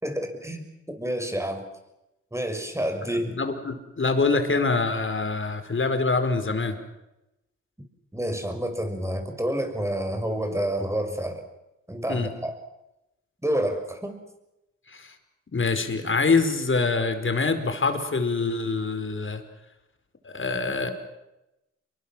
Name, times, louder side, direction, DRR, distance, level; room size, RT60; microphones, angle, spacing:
voice 1, 0.0-0.6 1.0-1.6 2.3-3.4 8.1-11.4 11.9-12.5 13.4-14.2, right 1 dB, 10° right, 5 dB, 6.3 m, -28 dB
voice 2, 3.1-6.8 12.1-12.3 14.9-15.1 15.5-19.4 20.2-20.9, left 4 dB, 40° left, 8 dB, 4.9 m, -25 dB
28.0 x 23.5 x 7.5 m, 0.93 s
cardioid pair, 60°, 30 cm